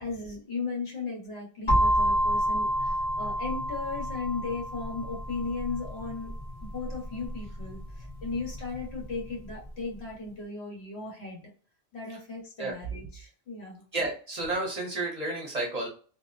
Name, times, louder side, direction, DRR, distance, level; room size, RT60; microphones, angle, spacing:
voice 1, 0.0-6.3 6.6-11.4 11.9-13.8, left 4 dB, 85° left, -1 dB, 1.4 m, -36 dB
sound 1, 1.7-9.5, equal, 35° left, 0.7 m, -29 dB
voice 2, 13.9-15.9, right 2 dB, 40° right, -2 dB, 0.8 m, -31 dB
2.7 x 2.0 x 2.5 m, 0.40 s
omnidirectional pair, 1.1 m